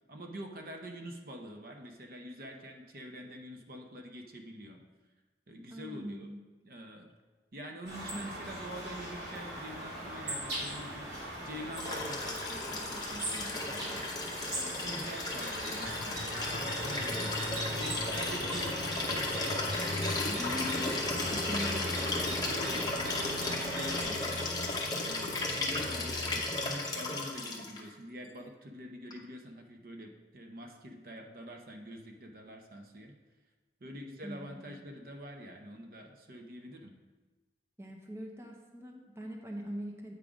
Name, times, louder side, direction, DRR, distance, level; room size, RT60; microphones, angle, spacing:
voice 1, 0.1-4.8 5.5-6.3 6.6-7.1 7.5-11.1 11.4-14.1 14.5-20.6 21.2-24.5 25.0-33.2 33.8-36.9, equal, 55° right, 3 dB, 0.7 m, -45 dB
voice 2, 5.7-6.4 20.4-21.2 34.2-34.8 37.8-40.1, left 1 dB, 15° right, 1 dB, 0.6 m, -42 dB
sound 1, 7.8-24.0, right 1 dB, 80° right, 2.2 m, -40 dB
Liquid, 11.8-27.8 29.1-29.2, left 2 dB, 25° left, 0.8 m, -35 dB
sound 2, 15.8-26.4, left 2 dB, 60° left, 0.7 m, -43 dB
8.1 x 3.6 x 5.0 m, 1.3 s
head